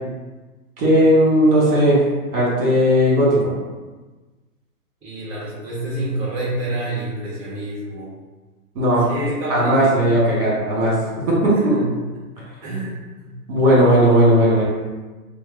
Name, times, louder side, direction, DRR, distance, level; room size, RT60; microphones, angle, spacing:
voice 1, 0.8-2.0 2.3-3.4 8.7-9.0 9.5-10.9 11.3-11.8 13.5-14.6, equal, 35° right, -6 dB, 1.4 m, -16 dB
voice 2, 5.0-8.1 9.1-10.5 11.5-11.9 12.6-13.3, right 1 dB, 5° right, -12 dB, 0.9 m, -28 dB
3.3 x 2.0 x 3.6 m, 1.2 s
hypercardioid pair, 140°, 47 cm